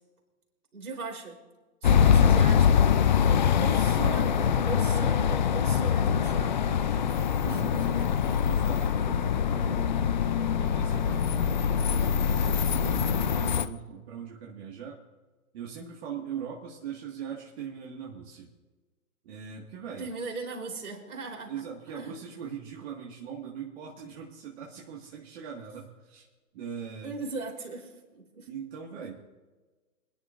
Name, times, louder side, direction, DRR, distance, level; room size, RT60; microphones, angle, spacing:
voice 1, 0.7-1.4 1.8-6.8 7.4-8.1 20.0-22.2 27.0-28.5, right 3 dB, 75° right, 0 dB, 4.0 m, -39 dB
sound 1, 1.8-13.7, left 7 dB, 35° left, 0.4 m, -24 dB
voice 2, 7.5-8.0 8.4-10.1 10.6-15.0 15.5-18.5 19.2-20.1 21.5-26.2 26.5-27.2 28.5-29.2, right 7 dB, 45° right, -2 dB, 2.0 m, -41 dB
26.5 x 10.5 x 2.6 m, 1.3 s
hypercardioid pair, 140°, 44 cm